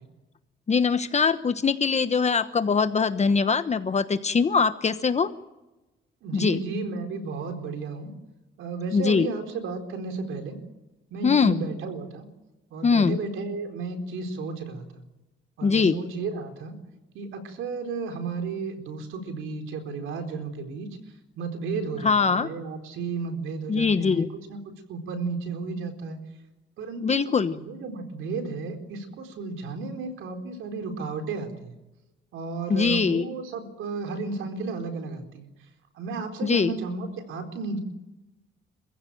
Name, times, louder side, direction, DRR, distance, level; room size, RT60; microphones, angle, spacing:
voice 1, 0.7-5.3 6.3-6.6 8.9-9.3 11.2-11.6 12.8-13.2 15.6-15.9 22.0-22.5 23.7-24.3 27.0-27.6 32.7-33.3 36.4-36.7, left 5 dB, 35° left, 11 dB, 1.1 m, -22 dB
voice 2, 6.2-8.1 8.6-10.6 11.1-12.3 12.7-15.0 15.6-16.7 17.1-20.9 21.4-24.6 24.9-26.2 26.8-31.7 32.3-35.5 36.0-37.8, right 4 dB, 85° right, 6 dB, 4.2 m, -33 dB
27.5 x 15.5 x 9.2 m, 1.0 s
cardioid pair, 90°, 20 cm